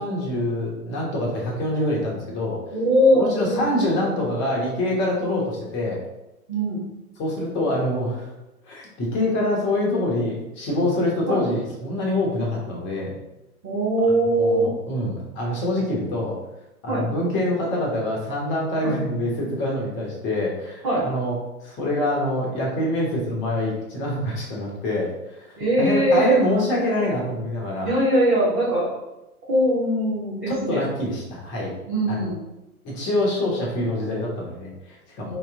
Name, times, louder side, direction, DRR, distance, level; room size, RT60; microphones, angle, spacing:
voice 1, 0.0-2.6 3.1-6.0 7.2-8.3 8.7-13.1 14.4-16.4 16.8-21.3 21.6-27.9 30.5-31.7 32.1-32.3 32.8-35.4, left 1 dB, 25° left, -2 dB, 1.1 m, -25 dB
voice 2, 2.7-3.8 5.2-5.3 6.5-6.8 11.3-11.4 13.6-14.7 16.9-17.0 18.8-19.0 20.8-21.1 25.6-26.4 27.8-29.0 29.5-30.8 31.9-32.4 35.3-35.4, right 1 dB, 15° right, -10 dB, 0.3 m, -21 dB
3.0 x 2.9 x 3.4 m, 0.94 s
figure-of-eight pair, 105°, 46 cm